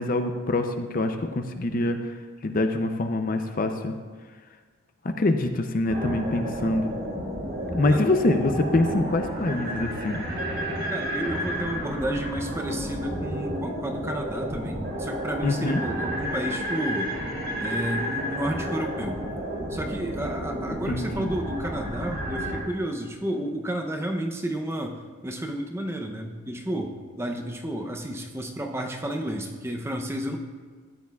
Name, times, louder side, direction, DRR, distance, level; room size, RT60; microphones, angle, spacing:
voice 1, 0.0-2.1 2.4-4.0 5.2-6.9 7.7-10.2 15.4-15.8 20.7-21.3, left 2 dB, 40° left, 6 dB, 0.5 m, -25 dB
sound 1, 5.9-22.6, equal, 65° right, 2.8 m, -31 dB
voice 2, 10.9-17.1 17.6-19.2 19.7-30.4, right 1 dB, 10° right, 3 dB, 0.6 m, -31 dB
13.5 x 9.6 x 2.3 m, 1.6 s
head